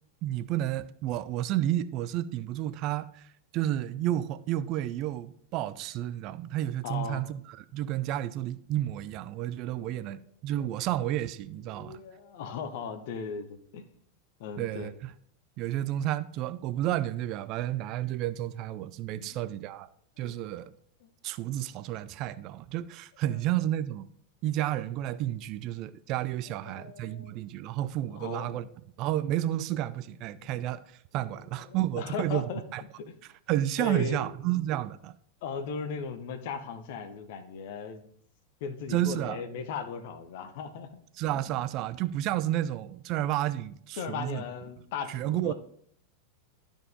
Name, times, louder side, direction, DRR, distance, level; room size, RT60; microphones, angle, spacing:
voice 1, 0.2-12.0 14.6-15.1 15.6-19.9 20.2-20.7 21.2-24.1 24.4-28.7 29.0-30.8 31.1-32.8 33.5-35.1 38.9-39.4 41.2-44.4 45.1-45.5, right 13 dB, 40° right, 0.4 m, -31 dB
voice 2, 6.8-7.2 9.7-10.3 11.7-13.8 14.4-14.9 19.1-19.5 20.2-20.3 21.0-21.1 23.3-23.4 26.5-27.3 28.1-28.7 30.3-30.7 31.3-32.6 33.0-33.1 33.8-34.4 35.4-38.1 38.6-41.0 44.0-45.5, left 5 dB, 50° left, 1.0 m, -38 dB
12.0 x 5.1 x 3.6 m
figure-of-eight pair, 90°, 0 cm